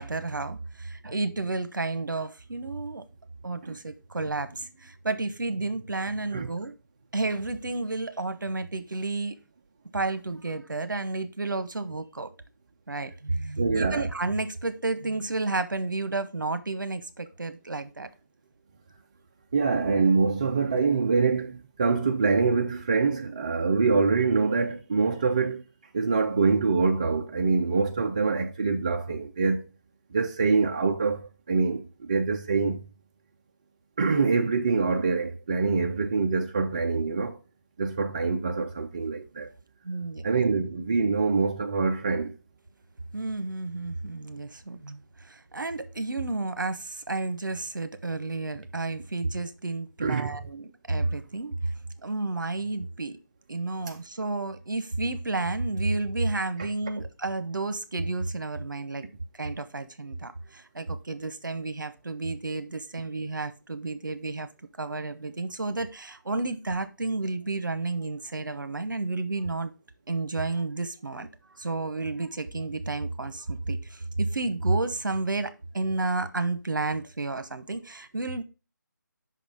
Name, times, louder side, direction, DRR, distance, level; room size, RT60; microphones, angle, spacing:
voice 1, 0.0-3.0 3.4-6.7 7.1-9.4 9.9-12.3 12.9-18.1 39.8-40.3 43.1-51.7 52.0-53.2 53.5-59.0 59.3-64.5 64.8-69.7 70.1-78.4, right 3 dB, 75° right, 0.9 m, -31 dB
voice 2, 13.6-14.1 19.5-25.6 25.9-29.7 30.1-32.8 34.0-37.4 37.8-39.5 40.2-42.3 50.0-50.3, right 4 dB, 25° right, 0.4 m, -25 dB
5.6 x 4.1 x 4.8 m
figure-of-eight pair, 155°, 11 cm